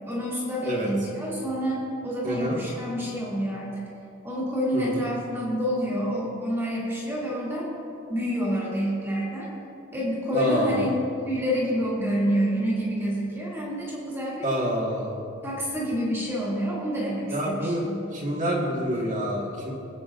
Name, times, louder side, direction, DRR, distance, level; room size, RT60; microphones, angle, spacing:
voice 1, 0.1-3.8 4.2-7.7 8.1-9.5 9.9-10.9 11.3-14.5 15.4-18.0, equal, 10° right, -6 dB, 2.4 m, -28 dB
voice 2, 2.2-2.6 4.7-5.0 10.3-10.9 14.4-15.3 17.3-17.8 18.1-19.7, equal, 35° right, -3 dB, 1.7 m, -27 dB
24.0 x 8.6 x 2.5 m, 2.7 s
head